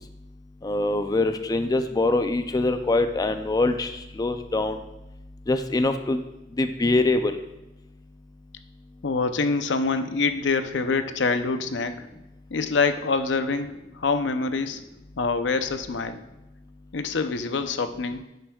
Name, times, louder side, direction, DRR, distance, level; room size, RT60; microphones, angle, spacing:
voice 1, 0.6-4.8 5.5-6.2 6.6-7.4, left 2 dB, 20° left, 8 dB, 0.4 m, -24 dB
voice 2, 9.0-12.1 12.5-14.8 15.2-16.2 16.9-18.2, left 4 dB, 90° left, 9 dB, 0.6 m, -25 dB
10.5 x 7.8 x 2.3 m, 0.97 s
head